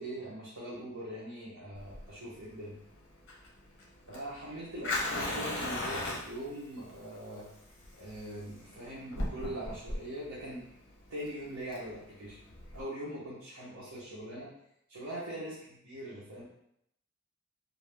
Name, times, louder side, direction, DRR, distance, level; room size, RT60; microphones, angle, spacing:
voice 1, 0.0-2.8 4.1-7.5 7.9-10.7 11.1-12.4 12.7-14.5 14.9-16.4, right 1 dB, 90° right, -7 dB, 0.8 m, -42 dB
Fire, 1.8-12.8, left 2 dB, 60° left, 0.8 m, -38 dB
2.5 x 2.4 x 3.3 m, 0.74 s
head